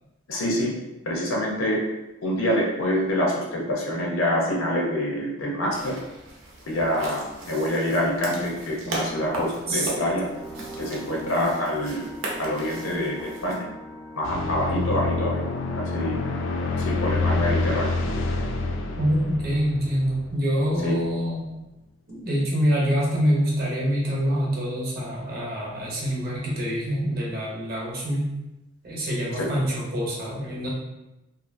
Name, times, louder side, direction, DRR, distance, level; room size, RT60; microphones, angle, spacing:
voice 1, 0.3-0.7 1.1-1.8 2.2-6.0 6.7-10.3 10.8-12.1 12.4-13.7 14.2-15.4 15.9-16.2 16.8-18.0 20.8-21.0 29.3-29.5, equal, 90° left, -1 dB, 0.7 m, -26 dB
sound 1, 5.7-13.6, right 2 dB, 80° right, 0.7 m, -37 dB
sound 2, 8.9-20.2, equal, ahead, 0.4 m, -43 dB
sound 3, 14.2-20.9, left 3 dB, 70° left, 0.4 m, -27 dB
voice 2, 19.0-21.4 22.1-28.3 28.8-30.7, equal, 50° right, -3 dB, 0.8 m, -25 dB
2.7 x 2.5 x 2.6 m, 0.97 s
head